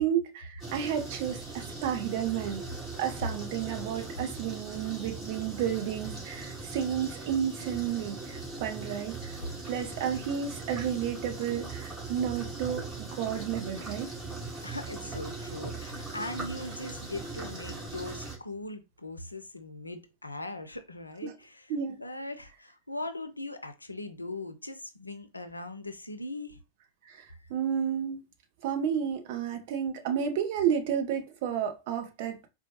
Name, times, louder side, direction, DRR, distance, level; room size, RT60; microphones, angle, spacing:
voice 1, 0.0-2.6 3.0-9.4 9.7-14.1 21.2-21.3 21.7-22.0 27.1-27.2 27.5-28.2 28.6-32.5, right 9 dB, 50° right, 0.7 m, -31 dB
sound 1, 0.6-18.4, right 3 dB, 20° right, 2.1 m, -40 dB
voice 2, 14.6-26.6, left 2 dB, 85° left, 0.5 m, -40 dB
4.3 x 2.2 x 2.8 m
figure-of-eight pair, 90°, 0 cm